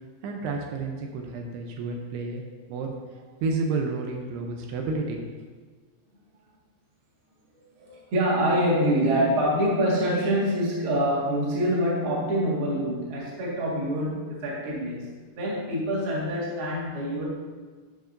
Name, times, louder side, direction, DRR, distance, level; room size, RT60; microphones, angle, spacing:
voice 1, 0.2-2.4 2.7-2.9 3.4-5.2, right 3 dB, 80° right, 1 dB, 2.7 m, -30 dB
voice 2, 7.5-17.3, equal, 45° right, -6 dB, 1.8 m, -26 dB
12.0 x 5.1 x 2.6 m, 1.5 s
omnidirectional pair, 4.7 m